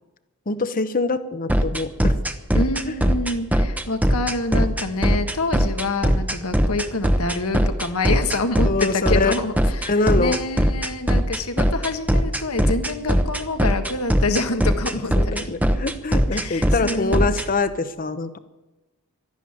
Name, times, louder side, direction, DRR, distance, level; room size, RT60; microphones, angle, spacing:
voice 1, 0.5-2.1 8.6-9.4 9.8-10.4 15.2-18.4, left 3 dB, 40° left, 12 dB, 0.9 m, -24 dB
sound 1, 1.5-17.4, equal, 5° right, 0.8 m, -19 dB
voice 2, 2.5-15.5 16.3-17.4, left 2 dB, 75° left, 7 dB, 1.5 m, -27 dB
12.5 x 11.5 x 9.7 m, 1.1 s
head